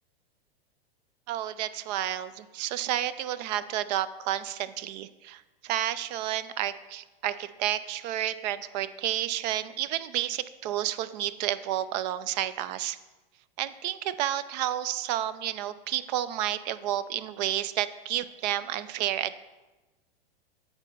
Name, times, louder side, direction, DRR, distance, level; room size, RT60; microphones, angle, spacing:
voice 1, 1.3-13.0 13.6-19.4, right 12 dB, 45° right, 15 dB, 0.4 m, -31 dB
8.8 x 4.1 x 5.4 m, 1.1 s
hypercardioid pair, 105°, 30 cm